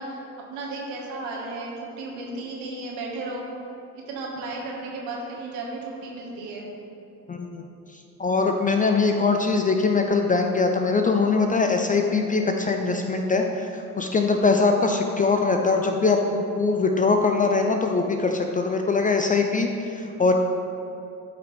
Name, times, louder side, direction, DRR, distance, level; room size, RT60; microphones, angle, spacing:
voice 1, 0.0-3.5 3.9-6.7, right 2 dB, 60° right, -2 dB, 1.8 m, -34 dB
voice 2, 7.3-7.7 7.9-20.3, left 4 dB, 20° left, 3 dB, 0.5 m, -22 dB
12.5 x 5.5 x 3.4 m, 2.7 s
figure-of-eight pair, 55°, 45 cm